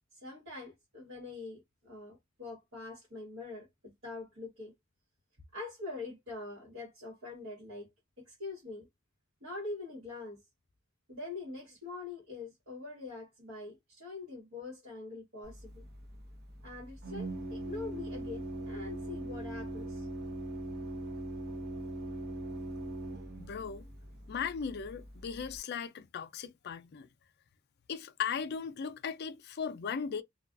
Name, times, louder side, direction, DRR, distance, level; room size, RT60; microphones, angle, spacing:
voice 1, 0.1-4.7 5.5-7.9 8.2-8.9 9.4-10.4 11.1-15.8 16.6-20.1, left 3 dB, 70° right, 1.2 m, -44 dB
Organ, 15.4-25.6, right 1 dB, 50° right, 0.8 m, -41 dB
voice 2, 23.4-23.8 24.3-27.1 27.9-30.2, left 6 dB, 55° left, 0.4 m, -37 dB
2.3 x 2.3 x 2.4 m
head